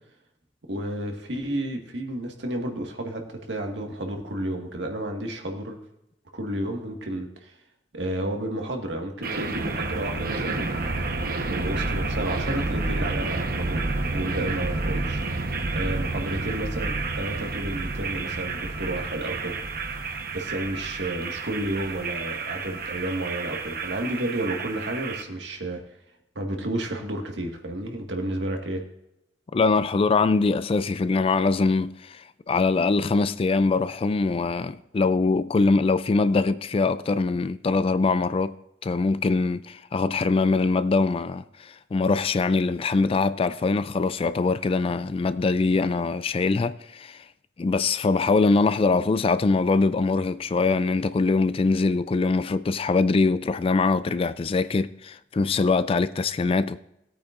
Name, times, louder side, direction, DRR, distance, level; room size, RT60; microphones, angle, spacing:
voice 1, 0.7-5.8 6.3-7.5 7.9-10.9 11.5-15.2 15.7-19.5 20.3-25.8 26.3-28.8, right 1 dB, 85° right, 1.8 m, -31 dB
sound 1, 9.2-25.2, right 3 dB, 55° right, 1.1 m, -30 dB
voice 2, 29.5-38.6 38.8-47.2 47.6-56.8, left 3 dB, 30° left, 0.3 m, -23 dB
17.5 x 8.7 x 2.5 m
head